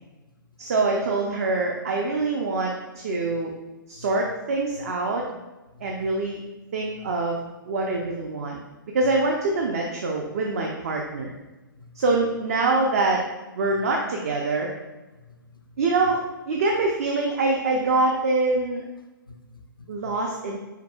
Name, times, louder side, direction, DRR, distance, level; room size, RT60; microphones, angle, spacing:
voice 1, 0.6-3.5 3.9-5.2 5.8-6.4 6.7-8.6 8.9-11.3 12.0-13.2 13.6-14.7 15.8-16.2 16.5-18.8 19.9-20.6, right 3 dB, 45° right, 0 dB, 0.5 m, -24 dB
voice 2, 5.7-6.1 9.0-9.1 11.8-12.0 15.1-15.8 19.3-20.1, left 3 dB, 80° left, 5 dB, 0.6 m, -49 dB
4.6 x 4.3 x 2.3 m, 1.1 s
figure-of-eight pair, 125°, 11 cm